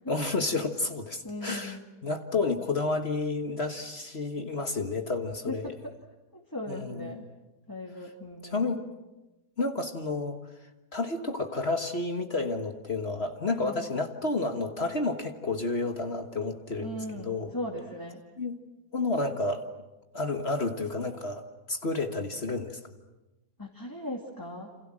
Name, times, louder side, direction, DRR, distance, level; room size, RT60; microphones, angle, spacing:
voice 1, 0.1-1.8 2.0-5.7 6.7-7.2 8.4-8.8 9.6-10.4 10.9-17.5 18.4-18.5 18.9-19.6 20.1-22.8, left 3 dB, 40° left, 6 dB, 1.7 m, -30 dB
voice 2, 1.2-1.8 5.5-5.9 6.3-7.3 7.7-8.7 13.5-13.8 16.8-18.2 23.6-24.7, left 1 dB, 10° left, 0 dB, 2.4 m, -38 dB
28.5 x 27.5 x 7.5 m, 1.1 s
omnidirectional pair, 1.7 m